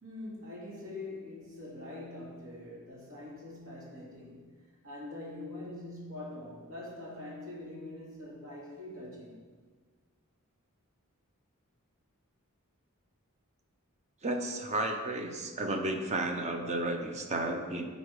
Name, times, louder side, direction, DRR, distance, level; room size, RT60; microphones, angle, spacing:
voice 1, 0.0-4.5 4.8-9.4, left 2 dB, 65° right, -6 dB, 2.6 m, -44 dB
voice 2, 14.2-17.9, right 2 dB, 30° right, 4 dB, 0.8 m, -32 dB
10.0 x 4.1 x 4.8 m, 1.5 s
head